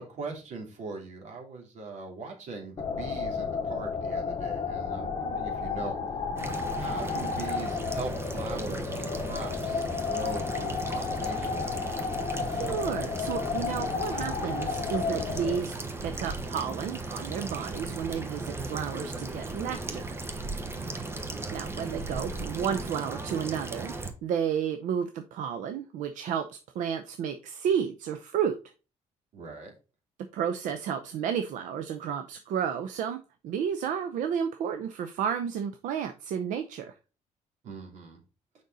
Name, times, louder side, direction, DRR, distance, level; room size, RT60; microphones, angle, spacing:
voice 1, 0.0-6.0 6.7-11.6 20.7-21.2 29.3-29.7 37.6-38.2, right 3 dB, 65° right, 2 dB, 2.9 m, -40 dB
sound 1, 2.8-15.6, left 5 dB, 40° left, 1.0 m, -32 dB
sound 2, 6.4-24.1, right 2 dB, 20° right, 1.1 m, -37 dB
voice 2, 12.5-15.7 16.0-20.1 21.5-23.9 24.2-28.6 30.3-36.9, right 8 dB, 85° right, 8 dB, 0.7 m, -32 dB
6.5 x 5.3 x 3.9 m, 0.32 s
cardioid pair, 125°, 13 cm